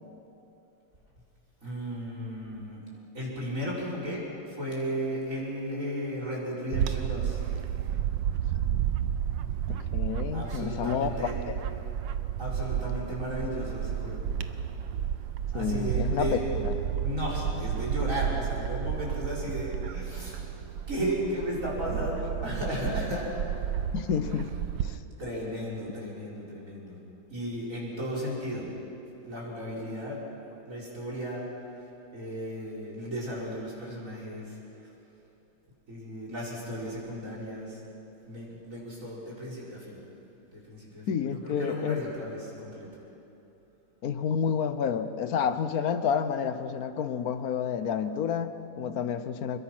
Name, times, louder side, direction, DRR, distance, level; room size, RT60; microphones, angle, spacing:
voice 1, 1.6-2.8 3.1-7.4 10.3-11.4 12.4-14.3 15.5-16.5 17.0-20.5 20.9-23.3 24.3-24.5 25.2-27.0 27.3-28.7 29.3-30.2 30.7-31.5 32.1-34.9 35.9-37.8 38.3-40.0 40.5-42.9, equal, 40° right, -5 dB, 5.5 m, -35 dB
Bird / Wind, 6.7-25.0, right 9 dB, 75° right, 1.5 m, -32 dB
voice 2, 9.9-11.1 11.5-11.6 15.5-16.3 16.6-16.7 23.9-24.5 24.8-25.0 41.1-42.0 44.0-49.6, left 7 dB, 55° left, 11 dB, 1.3 m, -29 dB
27.0 x 22.0 x 6.2 m, 3.0 s
omnidirectional pair, 2.1 m